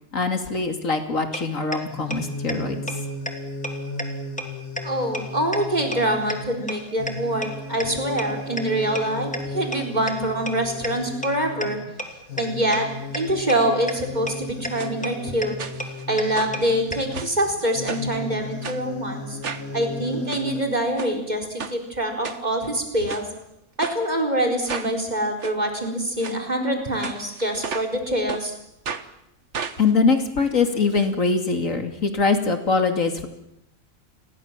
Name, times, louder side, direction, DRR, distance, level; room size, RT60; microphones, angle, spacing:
voice 1, 0.1-2.8 29.8-33.3, left 4 dB, 65° left, 6 dB, 3.0 m, -22 dB
sound 1, 1.3-1.4 1.7-1.8 2.1-2.2 2.5-2.6 2.9-3.0 3.3-3.4 3.6-3.7 4.0-4.1 4.4-4.5 4.8-4.9 5.1-5.2 5.5-5.6 5.9-6.0 6.3-6.4 6.7-6.8 7.1-7.2 7.4-7.5 7.8-7.9 8.2-8.3 8.6-8.7 8.9-9.0 9.3-9.4 9.7-9.8 10.1-10.2 10.5-10.6 10.8-10.9 11.2-11.3 11.6-11.7 12.0-12.1 12.4-12.5 12.7-12.8 13.1-13.2 13.5-13.6 13.9-14.0 14.3-14.4 14.6-14.7 15.0-15.1 15.4-15.5 15.8-15.9 16.2-16.3 16.5-16.6 16.9-17.0, equal, 5° left, 3.0 m, -28 dB
sound 2, 1.9-20.6, left 2 dB, 90° left, 3.1 m, -35 dB
voice 2, 4.8-11.8 12.4-15.6 16.1-19.4 19.7-23.3 23.8-28.5, right 1 dB, 30° right, 3 dB, 4.5 m, -25 dB
sound 3, 14.8-14.9 15.6-16.0 16.3-17.4 17.9-18.2 18.6-18.8 19.4-19.7 20.1-20.4 21.0-21.1 21.6-21.8 22.2-22.7 23.1-23.3 23.8-24.0 24.7-24.9 25.4-25.5 26.2-26.4 27.0-28.0 28.3-28.4 28.8-29.1 29.5-31.1 31.4-31.5 31.7-31.8, right 5 dB, 55° right, 1.6 m, -34 dB
29.5 x 22.5 x 7.5 m, 0.82 s
omnidirectional pair, 1.5 m